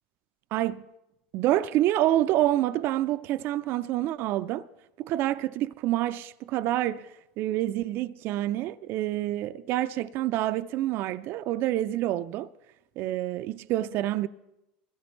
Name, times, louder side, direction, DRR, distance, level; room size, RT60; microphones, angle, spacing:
voice 1, 0.5-0.8 1.3-4.7 5.0-12.5 13.0-14.3, right 14 dB, 55° right, 0.4 m, -27 dB
21.0 x 15.5 x 3.0 m
hypercardioid pair, 90°, 5 cm